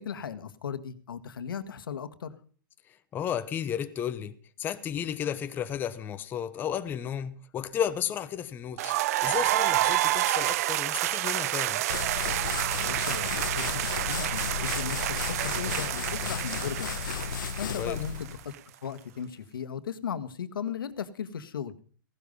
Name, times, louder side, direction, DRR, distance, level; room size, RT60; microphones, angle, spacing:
voice 1, 0.0-2.4 12.8-17.0 17.6-18.5 18.8-21.7, left 8 dB, 80° left, 1.7 m, -37 dB
voice 2, 3.1-8.9 9.2-11.8 17.8-18.0, left 9 dB, 15° left, 1.0 m, -33 dB
sound 1, 8.8-18.6, right 15 dB, 45° right, 0.6 m, -29 dB
sound 2, 11.9-18.4, left 8 dB, 65° left, 1.1 m, -34 dB
17.0 x 12.5 x 5.4 m
hypercardioid pair, 150°, 11 cm